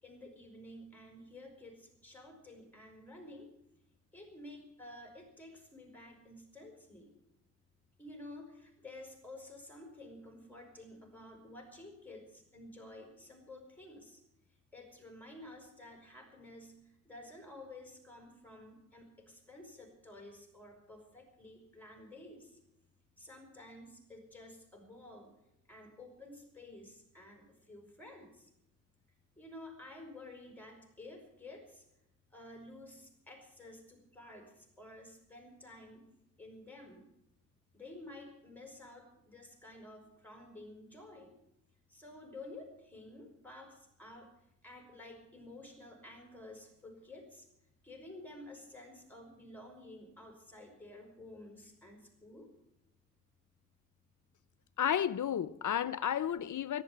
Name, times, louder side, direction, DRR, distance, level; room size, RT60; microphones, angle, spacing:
voice 1, 0.0-3.5 4.1-7.1 8.0-14.2 14.7-22.6 23.2-25.3 25.7-28.5 29.4-31.8 32.3-36.1 36.4-37.1 37.7-41.4 41.9-44.3 44.6-47.5 47.8-52.5, left 1 dB, 5° left, 5.6 m, -52 dB
voice 2, 54.8-56.8, left 9 dB, 85° left, 0.5 m, -32 dB
14.5 x 11.5 x 8.7 m
wide cardioid pair, 60°, 30 cm